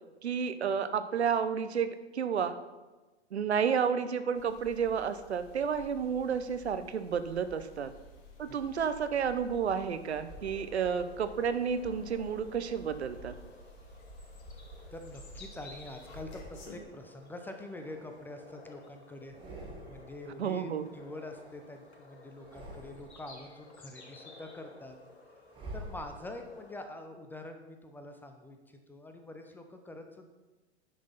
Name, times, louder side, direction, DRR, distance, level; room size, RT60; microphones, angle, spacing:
voice 1, 0.2-2.6 3.3-7.9 8.4-13.3 20.4-20.9, right 7 dB, 70° right, 11 dB, 0.8 m, -31 dB
sound 1, 4.3-16.7, equal, 40° left, 2.1 m, -51 dB
sound 2, 9.9-26.8, left 2 dB, 70° left, 2.4 m, -55 dB
sound 3, 14.3-15.5 16.2-17.1 17.6-18.8 19.2-20.3 20.5-21.9 22.3-23.4 23.8-26.6, right 1 dB, 15° right, 2.0 m, -50 dB
voice 2, 14.9-19.4 19.9-25.0 25.7-30.3, left 1 dB, 5° left, 5 dB, 0.5 m, -45 dB
9.7 x 6.1 x 5.6 m, 1.2 s
figure-of-eight pair, 105°, 34 cm